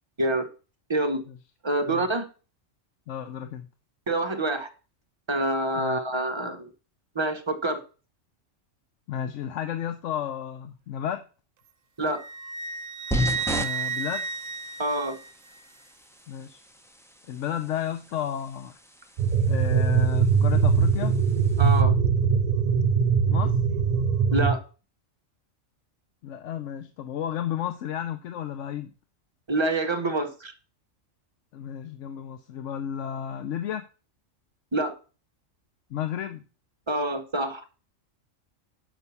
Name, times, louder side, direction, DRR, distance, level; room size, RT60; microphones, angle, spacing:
voice 1, 0.2-0.5 0.9-1.2 1.6-2.3 4.1-4.7 5.3-6.7 7.1-7.8 12.0-12.2 14.8-15.2 21.6-21.9 24.3-24.6 29.5-30.5 34.7-34.9 36.9-37.6, right 2 dB, 25° right, 5 dB, 0.9 m, -26 dB
voice 2, 3.1-3.7 5.7-6.0 9.1-11.2 13.6-14.3 16.3-16.6 17.3-18.8 19.5-21.2 23.3-23.5 26.2-28.9 31.5-33.9 35.9-36.4, left 10 dB, 70° left, 9 dB, 1.0 m, -32 dB
Wind instrument woodwind instrument, 12.1-15.6, right 5 dB, 70° right, 1.0 m, -33 dB
sound 1, 13.1-21.8, equal, 5° left, 0.3 m, -36 dB
sound 2, 19.2-24.5, right 6 dB, 50° right, 0.7 m, -21 dB
6.1 x 5.4 x 7.0 m, 0.36 s
omnidirectional pair, 1.3 m